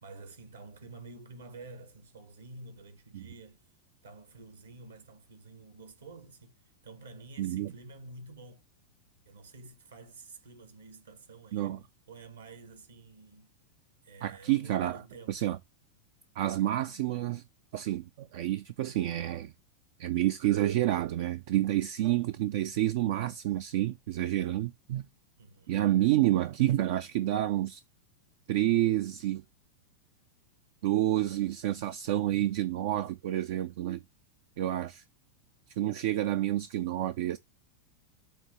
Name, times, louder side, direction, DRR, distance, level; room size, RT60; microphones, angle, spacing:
voice 1, 0.0-3.6 4.0-6.6 6.8-8.6 9.2-13.5 14.0-15.4 25.4-25.7, right 3 dB, 70° right, 1.4 m, -49 dB
voice 2, 7.4-7.7 11.5-11.8 14.2-15.0 15.3-15.6 16.4-17.4 17.7-19.5 20.0-25.1 25.7-27.8 28.5-29.4 30.8-34.0 34.6-35.0 35.8-37.4, right 14 dB, 50° right, 0.4 m, -29 dB
7.3 x 2.9 x 5.5 m
figure-of-eight pair, 90°, 0 cm